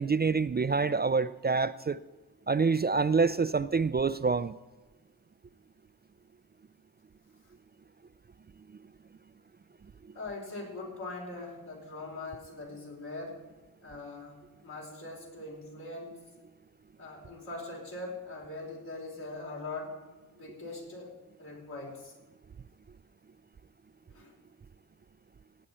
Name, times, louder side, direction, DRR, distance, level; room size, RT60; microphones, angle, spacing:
voice 1, 0.0-2.0 2.5-4.5, right 4 dB, 25° right, 0.4 m, -26 dB
voice 2, 10.1-13.4 13.8-16.2 17.0-20.0 20.3-21.1 21.4-22.1 24.1-24.3, left 2 dB, 75° left, 4.8 m, -41 dB
18.5 x 8.7 x 4.3 m
cardioid pair, 45°, 39 cm